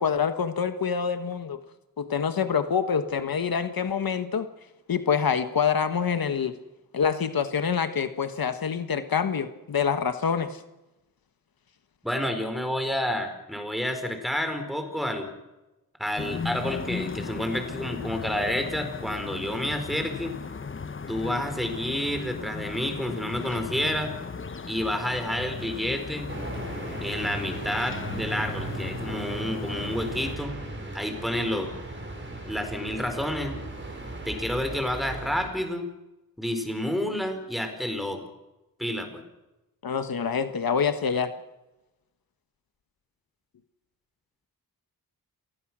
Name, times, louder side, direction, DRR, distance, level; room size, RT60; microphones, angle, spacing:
voice 1, 0.0-1.6 2.0-4.5 4.9-6.5 6.9-10.6 39.8-41.3, left 6 dB, 70° left, 9 dB, 1.4 m, -26 dB
voice 2, 12.0-15.3 16.0-20.3 21.1-24.1 24.7-26.3 27.0-30.6 30.9-31.7 32.4-33.6 34.3-35.9 36.4-38.2 38.8-39.2, left 1 dB, ahead, 6 dB, 4.6 m, -29 dB
sound 1, 16.2-30.4, left 5 dB, 35° left, 0.9 m, -37 dB
sound 2, 26.3-35.5, right 2 dB, 30° right, 6.3 m, -37 dB
28.5 x 19.5 x 6.3 m, 1.0 s
wide cardioid pair, 110°, 36 cm